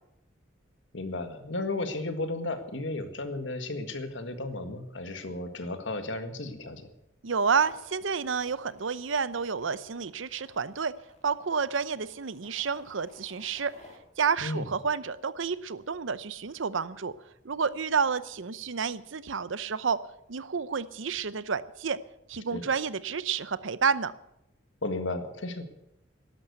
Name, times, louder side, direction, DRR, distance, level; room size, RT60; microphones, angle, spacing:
voice 1, 0.9-6.9 14.4-14.7 22.5-22.6 24.8-25.6, left 2 dB, 70° left, 8 dB, 1.7 m, -34 dB
voice 2, 7.2-11.0 11.2-13.7 14.2-17.1 17.4-20.0 20.3-22.0 22.3-24.1, right 5 dB, 80° right, 16 dB, 0.7 m, -30 dB
sound 1, 7.6-14.0, left 2 dB, 35° left, 2.7 m, -57 dB
12.0 x 11.5 x 8.1 m, 0.83 s
head